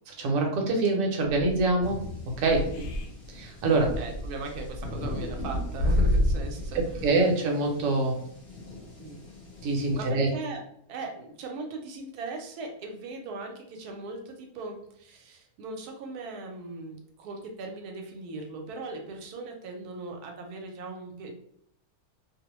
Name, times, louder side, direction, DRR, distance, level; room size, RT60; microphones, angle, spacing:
voice 1, 0.1-2.0 2.4-2.6 3.3-3.9 7.0-8.2 9.6-10.3, right 2 dB, 65° right, 1 dB, 0.9 m, -25 dB
sound 1, 1.3-1.9 2.3-3.0 3.3-3.4 3.8-7.0, left 1 dB, 70° left, 0.7 m, -28 dB
sound 2, 1.8-10.1, left 3 dB, 45° left, 1.0 m, -43 dB
voice 2, 2.6-2.9 3.9-7.1 9.0-9.2 9.8-10.6 10.9-21.3, right 3 dB, 85° right, 3 dB, 1.1 m, -39 dB
2.5 x 2.0 x 2.9 m, 0.70 s
omnidirectional pair, 1.6 m